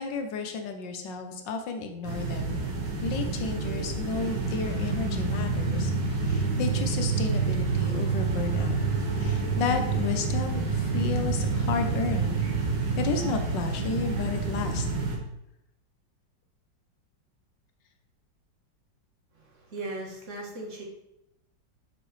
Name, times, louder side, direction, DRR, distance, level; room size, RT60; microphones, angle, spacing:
voice 1, 0.0-2.6 3.0-8.8 9.2-12.4 13.0-14.9, left 5 dB, 75° left, 6 dB, 1.6 m, -32 dB
sound 1, 2.0-15.2, right 4 dB, 70° right, 1.8 m, -28 dB
voice 2, 19.3-20.8, right 2 dB, 45° right, -1 dB, 1.6 m, -38 dB
7.0 x 6.0 x 3.3 m, 0.82 s
omnidirectional pair, 2.0 m